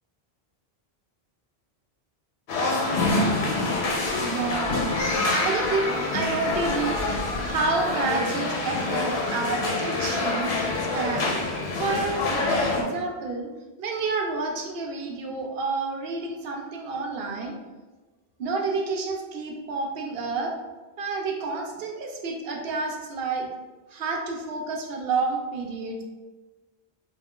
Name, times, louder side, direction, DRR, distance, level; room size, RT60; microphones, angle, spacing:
sound 1, 2.5-12.8, left 2 dB, 90° left, 0.9 m, -26 dB
voice 1, 4.2-5.0 5.3-7.1 7.4-10.5 10.8-11.4 11.7-13.5 13.8-17.6 18.4-20.5 21.0-23.5 23.9-26.0, right 3 dB, 70° right, 2 dB, 0.8 m, -29 dB
2.3 x 2.3 x 3.5 m, 1.2 s
omnidirectional pair, 1.0 m